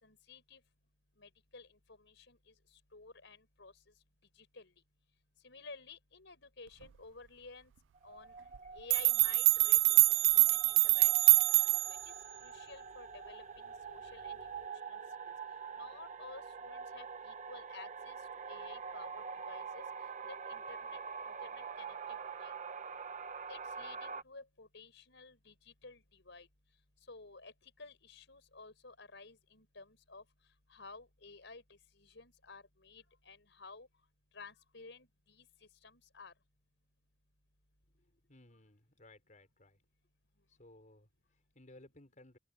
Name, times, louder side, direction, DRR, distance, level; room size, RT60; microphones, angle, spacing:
voice 1, 0.0-0.6 1.2-2.5 2.9-3.7 4.4-4.7 5.4-7.7 8.0-8.3 8.7-10.1 10.3-11.4 11.9-12.1 12.4-15.0 15.3-15.4 15.8-18.2 18.5-19.8 20.2-21.0 21.4-22.5 23.5-26.5 27.1-30.2 30.7-31.6 32.0-33.9 34.3-35.5 35.8-36.3, left 4 dB, 70° left, 6.1 m, -53 dB
sound 1, 7.9-24.2, right 5 dB, 40° right, 1.1 m, -45 dB
sound 2, 8.5-8.6 8.9-12.1, right 23 dB, 75° right, 0.4 m, -25 dB
voice 2, 37.9-39.8 40.5-42.4, left 1 dB, 40° left, 5.5 m, -60 dB
open air
head